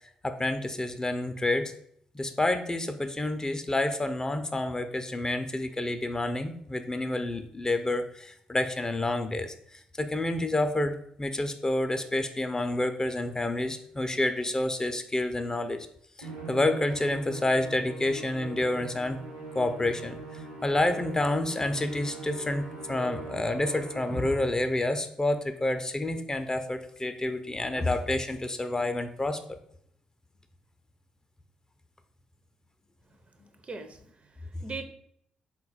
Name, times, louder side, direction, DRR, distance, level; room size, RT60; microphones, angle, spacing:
voice 1, 0.2-1.7 2.1-15.9 16.2-19.2 19.5-29.6, left 2 dB, 20° left, 8 dB, 0.4 m, -29 dB
Musical instrument, 16.2-24.7, right 2 dB, 85° right, 0.9 m, -42 dB
voice 2, 33.6-34.8, right 4 dB, 40° right, 8 dB, 0.5 m, -40 dB
3.9 x 2.3 x 3.9 m, 0.67 s
hypercardioid pair, 40°, 3 cm